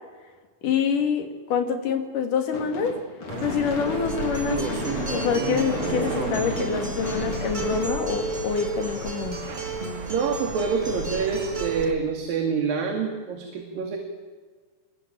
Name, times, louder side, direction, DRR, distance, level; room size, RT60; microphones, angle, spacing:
voice 1, 0.6-3.0 3.4-4.7 5.1-9.4, left 6 dB, 60° left, 6 dB, 3.9 m, -26 dB
Gunshot gunfire / Fireworks, 2.5-8.8, left 3 dB, 40° left, 3.9 m, -34 dB
sound 1, 3.3-11.9, right 5 dB, 45° right, 3.2 m, -34 dB
Acoustic guitar, 3.9-11.8, right 3 dB, 15° right, 2.1 m, -34 dB
voice 2, 10.1-14.0, right 5 dB, 70° right, 3 dB, 4.1 m, -26 dB
27.0 x 21.5 x 9.2 m, 1.5 s
omnidirectional pair, 4.2 m